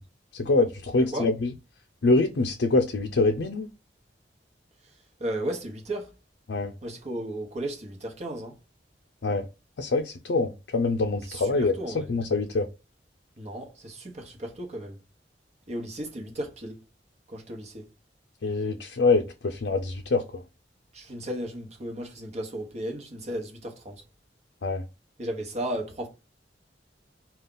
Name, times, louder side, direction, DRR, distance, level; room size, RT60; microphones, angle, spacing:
voice 1, 0.3-1.5 2.0-3.7 6.5-6.7 9.2-9.4 9.8-11.7 12.1-12.7 18.4-20.4 24.6-24.8, left 3 dB, 70° left, 0.5 m, -25 dB
voice 2, 1.0-1.3 4.8-6.1 6.8-8.6 11.2-12.1 13.4-15.0 15.7-16.8 17.3-17.9 20.9-24.0 25.2-26.1, right 1 dB, 40° right, 1.1 m, -35 dB
5.2 x 2.3 x 3.8 m
head